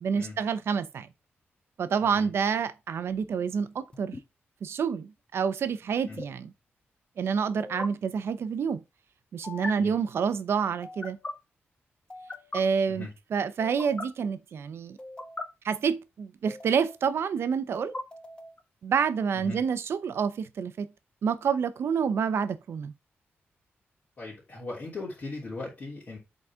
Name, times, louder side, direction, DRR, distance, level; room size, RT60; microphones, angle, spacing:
voice 1, 0.0-1.1 1.8-4.2 4.6-6.5 7.2-8.8 9.3-11.2 12.5-15.0 15.6-17.9 18.8-20.9 21.2-22.9, right 6 dB, 70° right, 0.7 m, -28 dB
sound 1, 3.9-4.2 6.0-6.2 7.6-7.9 9.4-9.7 10.8-11.3 12.1-12.6 13.6-14.1 15.0-15.4 16.5-17.0 17.7-18.6, left 2 dB, 25° left, 0.9 m, -39 dB
voice 2, 24.2-26.2, left 3 dB, 40° left, 3.1 m, -39 dB
7.9 x 4.1 x 3.6 m
wide cardioid pair, 155°, 4 cm